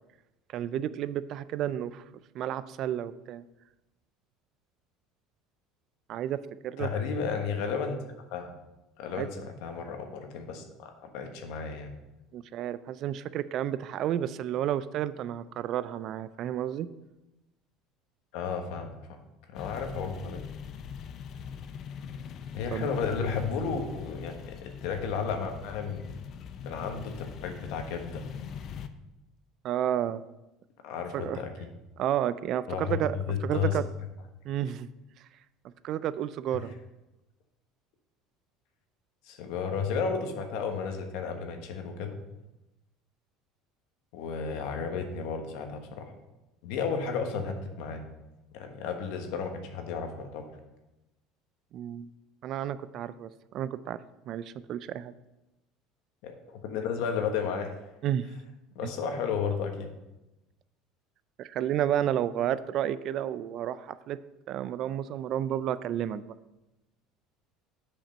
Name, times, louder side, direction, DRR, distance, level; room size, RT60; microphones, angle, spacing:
voice 1, 0.5-2.0 2.3-3.4 6.1-6.9 9.1-9.3 12.3-16.9 22.7-22.9 29.6-30.2 31.1-31.4 32.0-33.9 34.4-34.9 35.8-36.7 51.7-52.1 52.4-54.0 54.3-55.1 58.0-58.3 58.8-58.9 61.4-64.2 64.5-66.3, right 11 dB, 50° right, 16 dB, 0.3 m, -31 dB
voice 2, 6.8-8.0 8.3-8.5 9.0-11.9 18.3-19.2 19.5-20.4 22.5-26.1 26.6-28.2 30.8-31.7 32.7-33.0 33.3-33.7 39.2-42.2 44.1-46.1 46.6-48.0 48.5-50.4 56.2-57.7 58.7-59.9, left 6 dB, 75° left, 5 dB, 1.2 m, -33 dB
sound 1, 19.5-28.9, left 7 dB, 45° left, 0.5 m, -41 dB
7.3 x 5.1 x 5.3 m, 0.98 s
supercardioid pair, 120°, 0 cm